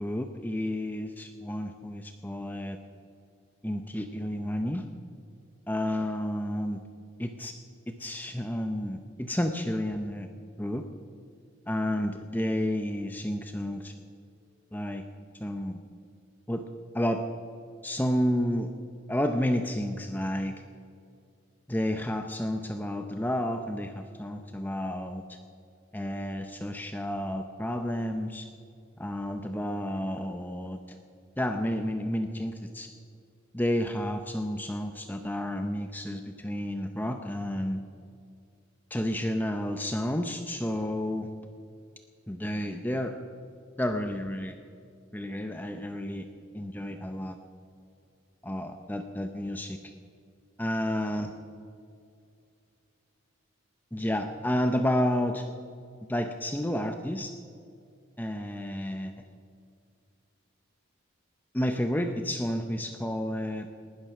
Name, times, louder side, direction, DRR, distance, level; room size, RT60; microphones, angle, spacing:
voice 1, 0.0-2.8 3.6-4.8 5.7-6.8 7.2-7.5 7.9-10.3 10.6-10.9 11.7-13.9 14.7-15.0 15.4-15.8 16.5-16.7 16.9-17.2 17.8-18.7 19.1-20.6 21.7-25.4 25.9-28.5 29.0-31.0 31.4-32.9 33.5-37.8 38.9-41.3 42.3-43.2 43.8-44.6 45.1-46.3 46.5-47.4 48.4-49.9 50.6-51.3 53.9-55.5 56.1-57.3 58.2-59.1 61.5-63.7, left 1 dB, 10° left, 6 dB, 0.6 m, -31 dB
19.5 x 12.0 x 6.1 m, 2.4 s
head